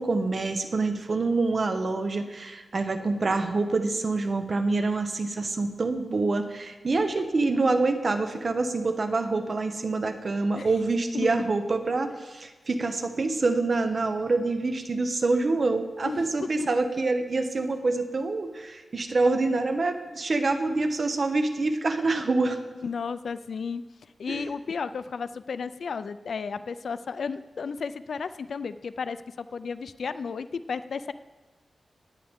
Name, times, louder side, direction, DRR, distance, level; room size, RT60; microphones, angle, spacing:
voice 1, 0.0-22.6 24.3-24.5, right 3 dB, 45° right, 7 dB, 0.8 m, -26 dB
voice 2, 22.8-23.8 24.2-31.1, left 5 dB, 70° left, 13 dB, 0.4 m, -33 dB
19.0 x 8.4 x 3.6 m, 1.3 s
wide cardioid pair, 145°, 0 cm